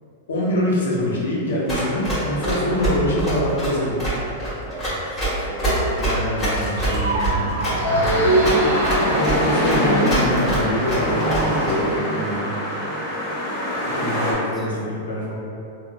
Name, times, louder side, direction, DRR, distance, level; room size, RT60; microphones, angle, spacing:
voice 1, 0.3-4.1 5.9-7.5 9.0-12.5 13.7-15.4, equal, 90° left, -5 dB, 0.7 m, -24 dB
Run, 1.7-11.7, right 1 dB, 20° left, 1.2 m, -25 dB
voice 2, 4.2-5.7 14.1-14.7, right 2 dB, 15° right, -2 dB, 0.4 m, -41 dB
sound 1, 6.8-10.7, right 1 dB, 85° right, 0.4 m, -23 dB
sound 2, 7.8-14.3, equal, 35° left, 0.9 m, -23 dB
3.3 x 2.3 x 2.2 m, 2.5 s
hypercardioid pair, 130°, 0 cm